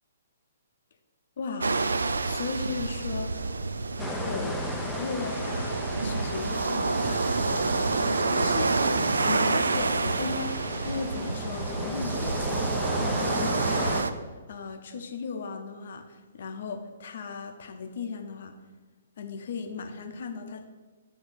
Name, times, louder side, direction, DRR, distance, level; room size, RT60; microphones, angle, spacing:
voice 1, 1.4-1.7 2.2-3.4 4.2-4.6 5.0-8.7 9.3-10.6 10.8-18.6 19.2-20.7, left 4 dB, 50° left, 5 dB, 0.7 m, -37 dB
sound 1, 1.6-14.1, right 3 dB, 65° right, 0.3 m, -28 dB
sound 2, 4.0-14.0, left 1 dB, 5° left, 0.5 m, -35 dB
7.2 x 3.1 x 5.3 m, 1.3 s
figure-of-eight pair, 125°, 0 cm